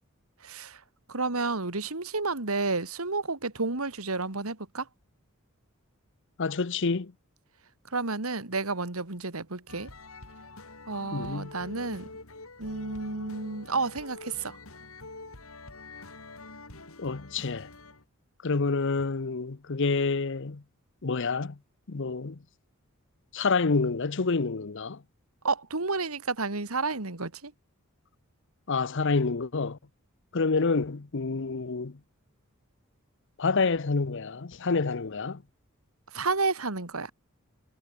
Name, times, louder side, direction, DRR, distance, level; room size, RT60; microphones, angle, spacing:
voice 1, 0.4-0.8 1.1-4.9 7.9-9.9 10.9-12.1 12.6-14.6 25.4-27.5 36.1-37.1, right 3 dB, 85° right, 2.5 m, -31 dB
voice 2, 6.4-7.1 11.1-11.5 17.0-17.7 18.4-20.6 21.0-21.6 21.9-22.4 23.3-25.0 28.7-29.8 30.3-32.0 33.4-35.4, left 4 dB, 60° left, 0.8 m, -28 dB
sound 1, 9.7-18.0, left 2 dB, 75° left, 5.4 m, -46 dB
head